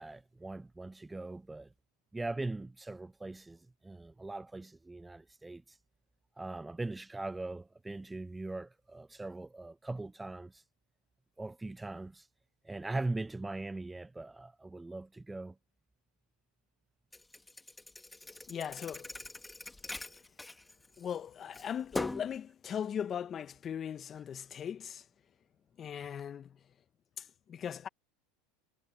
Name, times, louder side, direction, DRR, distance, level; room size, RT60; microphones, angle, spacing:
voice 1, 0.0-1.7 2.1-5.8 6.4-10.6 11.4-12.3 12.6-15.5, right 2 dB, 10° right, 0.6 m, -40 dB
Thump thud, 17.1-21.2 21.5-22.4, left 2 dB, 10° left, 2.0 m, -42 dB
voice 2, 18.5-19.2 21.0-25.0 25.8-26.6 27.2-27.9, left 8 dB, 35° left, 1.3 m, -39 dB
hypercardioid pair, 95°, 0 cm